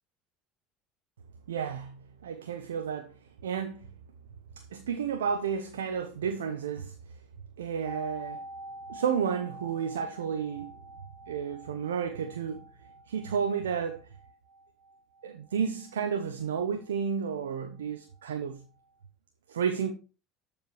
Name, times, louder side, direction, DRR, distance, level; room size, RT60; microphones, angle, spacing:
voice 1, 1.5-3.1 3.4-3.9 4.6-6.9 7.6-8.4 8.9-10.7 11.3-12.6 13.1-14.0 15.2-18.7 19.5-19.9, right 7 dB, 85° right, 0.8 m, -32 dB
sound 1, 7.8-17.6 17.9-18.0, right 1 dB, 45° right, 1.9 m, -47 dB
13.5 x 5.1 x 3.1 m
hypercardioid pair, 70°, 0 cm